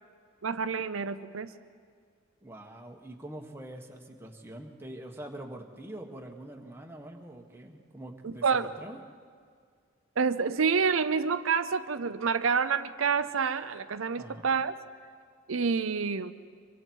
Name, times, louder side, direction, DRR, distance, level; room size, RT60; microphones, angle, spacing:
voice 1, 0.4-1.5 8.2-8.7 10.2-14.7 15.5-16.3, right 5 dB, 80° right, 10 dB, 0.7 m, -28 dB
voice 2, 2.4-9.0 14.1-14.5, right 1 dB, 10° right, 1 dB, 1.5 m, -44 dB
25.0 x 24.0 x 4.7 m, 2.1 s
head